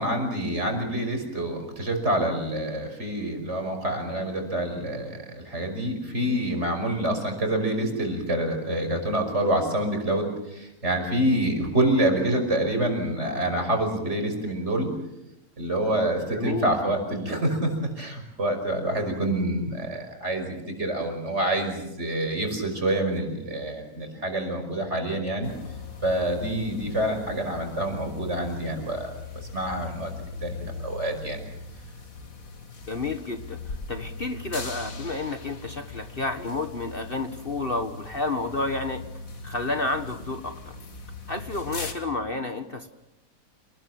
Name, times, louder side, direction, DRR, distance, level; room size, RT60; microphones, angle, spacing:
voice 1, 0.0-14.9 15.6-25.5 26.0-29.1 29.5-30.1 30.4-31.4, right 1 dB, 50° right, 5 dB, 5.9 m, -27 dB
voice 2, 16.3-16.7 32.9-39.0 39.4-40.7 41.3-42.9, left 3 dB, 40° left, 7 dB, 1.6 m, -30 dB
sound 1, 25.4-41.9, left 3 dB, 65° left, 2.6 m, -40 dB
29.0 x 20.5 x 7.7 m, 0.87 s
omnidirectional pair, 1.6 m